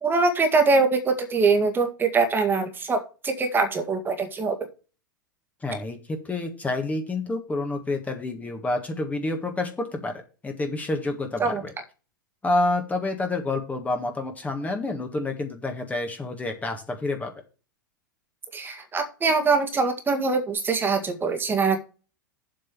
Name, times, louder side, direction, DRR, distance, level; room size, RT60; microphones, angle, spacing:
voice 1, 0.0-4.6 11.4-11.6 18.5-21.8, right 4 dB, 20° right, 6 dB, 1.8 m, -23 dB
voice 2, 5.6-6.0 6.2-11.7 12.4-17.3, left 2 dB, 15° left, 4 dB, 1.7 m, -28 dB
7.7 x 5.4 x 6.8 m, 0.34 s
figure-of-eight pair, 95°, 11 cm